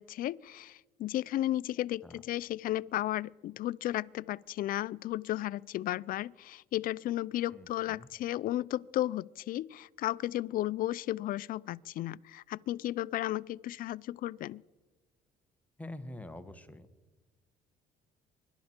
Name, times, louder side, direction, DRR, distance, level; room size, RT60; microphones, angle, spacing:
voice 1, 0.0-14.6, left 14 dB, 55° left, 0.4 m, -34 dB
voice 2, 7.5-8.1 15.8-16.9, left 1 dB, 10° left, 1.1 m, -46 dB
24.0 x 12.0 x 4.4 m
cardioid pair, 110°, 17 cm